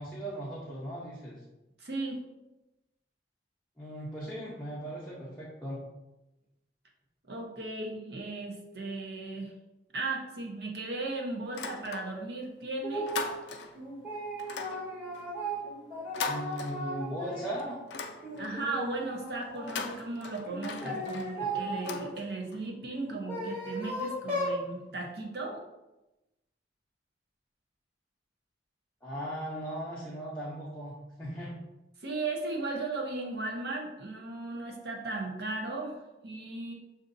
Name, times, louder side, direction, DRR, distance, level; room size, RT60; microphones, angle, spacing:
voice 1, 0.0-1.4 3.8-5.8 16.3-17.8 20.8-21.2 29.0-31.5, right 1 dB, 10° left, -8 dB, 0.7 m, -38 dB
voice 2, 1.8-2.2 7.3-9.5 9.9-13.1 18.4-25.6 32.0-36.7, right 2 dB, 65° right, 0 dB, 0.8 m, -36 dB
sound 1, 11.5-12.4 12.7-13.9 14.4-17.2 17.6-18.7 19.5-22.6, left 4 dB, 80° left, 0.4 m, -40 dB
sound 2, 12.8-13.3 13.7-17.8 18.2-19.8 20.5-22.1 22.9-24.6, right 1 dB, 10° right, 1.4 m, -36 dB
6.4 x 2.6 x 2.6 m, 0.97 s
head